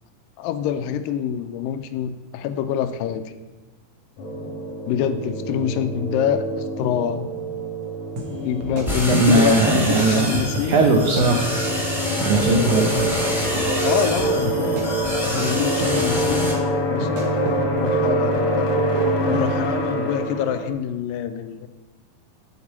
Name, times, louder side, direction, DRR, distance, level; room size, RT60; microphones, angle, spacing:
voice 1, 0.4-3.2 4.9-7.3 8.4-10.9 12.6-13.1 13.8-14.8 15.2-16.5 16.9-17.3 17.7-18.7 19.3-21.7, left 8 dB, 80° left, 10 dB, 2.1 m, -25 dB
sound 1, 4.2-20.7, right 1 dB, 60° left, 1.6 m, -25 dB
sound 2, 8.2-8.3 8.6-9.4 9.7-10.1 10.6-10.7 11.0-11.3 12.2-13.1 13.4-14.1 14.5-14.9 15.4-15.5 15.8-16.1 17.0-17.6, right 1 dB, 60° right, 1.8 m, -32 dB
sound 3, 8.9-16.5, equal, ahead, 0.8 m, -28 dB
voice 2, 9.1-11.5 12.2-12.9, right 3 dB, 75° right, 2 dB, 1.8 m, -19 dB
8.2 x 5.1 x 7.3 m, 1.1 s
omnidirectional pair, 4.3 m